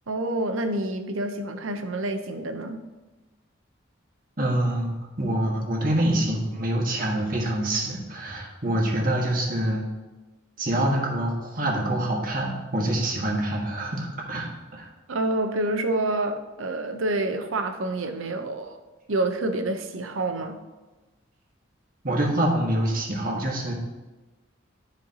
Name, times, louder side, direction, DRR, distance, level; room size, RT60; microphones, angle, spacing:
voice 1, 0.1-2.8 15.1-18.8 19.1-20.6, right 2 dB, 80° right, 7 dB, 0.7 m, -28 dB
voice 2, 4.4-9.8 10.6-14.9 22.0-23.7, right 1 dB, 45° right, -2 dB, 1.5 m, -26 dB
12.5 x 4.5 x 2.8 m, 1.2 s
head